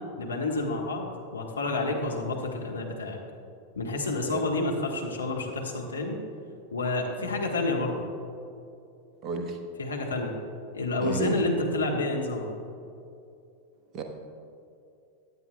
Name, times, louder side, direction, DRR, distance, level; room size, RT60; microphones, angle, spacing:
voice 1, 0.2-3.2 3.7-6.2 6.7-8.0 9.8-10.3 10.7-12.5, left 2 dB, 75° left, 0 dB, 1.3 m, -29 dB
voice 2, 9.2-9.6 11.0-11.4 13.9-14.0, right 4 dB, 30° right, 4 dB, 1.2 m, -32 dB
16.0 x 10.5 x 2.3 m, 2.6 s
figure-of-eight pair, 90°, 0 cm